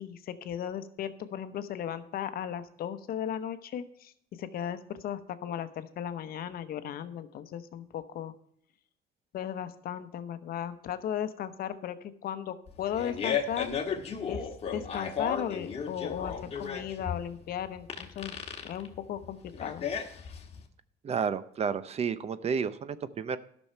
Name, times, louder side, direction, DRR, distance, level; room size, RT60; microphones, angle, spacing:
voice 1, 0.0-4.1 4.4-8.3 9.3-13.9 14.3-18.3 18.6-19.8, left 9 dB, 60° left, 11 dB, 0.9 m, -36 dB
Fart, 12.7-20.6, left 6 dB, 35° left, 1.5 m, -34 dB
voice 2, 21.0-23.4, right 6 dB, 40° right, 14 dB, 0.6 m, -31 dB
12.0 x 6.3 x 5.5 m, 0.69 s
cardioid pair, 110°, 17 cm